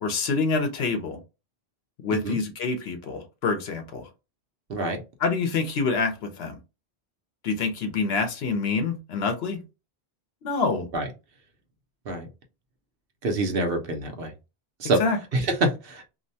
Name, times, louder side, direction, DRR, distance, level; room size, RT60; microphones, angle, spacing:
voice 1, 0.0-1.2 2.0-4.1 5.2-6.6 7.4-9.6 10.4-10.9 15.0-15.2, left 4 dB, 75° left, 0.9 m, -26 dB
voice 2, 4.7-5.0 10.9-11.1 12.1-12.3 13.2-14.3 14.8-15.0 15.3-16.1, right 2 dB, 65° right, 0.9 m, -26 dB
2.7 x 2.1 x 2.6 m
omnidirectional pair, 1.1 m